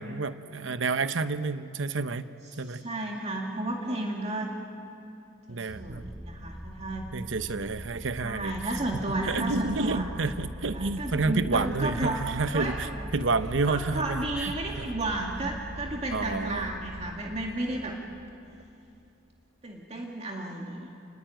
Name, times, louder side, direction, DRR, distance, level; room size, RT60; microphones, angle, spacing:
voice 1, 0.0-2.2 2.6-2.8 5.5-6.1 7.1-8.6 9.2-12.9 13.1-14.5 16.1-16.7, right 3 dB, 80° right, 12 dB, 0.9 m, -29 dB
voice 2, 2.5-4.5 5.5-7.1 8.2-10.1 10.7-13.0 13.7-18.0 19.6-20.9, right 2 dB, 35° right, 0 dB, 2.2 m, -33 dB
sound 1, 5.7-18.6, equal, 5° left, 7.0 m, -41 dB
29.0 x 21.0 x 9.1 m, 2.6 s
head